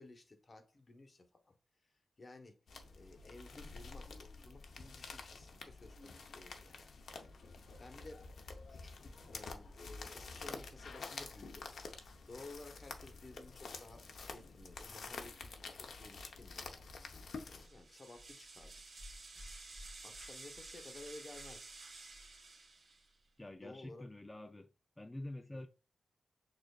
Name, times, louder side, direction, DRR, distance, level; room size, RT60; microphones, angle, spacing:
voice 1, 0.0-1.5 2.2-2.6 2.9-6.8 7.8-8.3 8.7-11.7 12.3-16.7 17.4-18.8 20.0-21.7 23.6-24.1 25.5-25.7, left 2 dB, 45° left, 0.9 m, -55 dB
sound 1, 2.7-17.7, left 4 dB, 80° left, 0.6 m, -49 dB
sound 2, 17.6-23.2, right 2 dB, 75° right, 1.4 m, -52 dB
voice 2, 23.4-24.7 25.0-25.7, left 1 dB, 15° left, 0.3 m, -47 dB
6.5 x 2.5 x 2.3 m
cardioid pair, 75°, 0 cm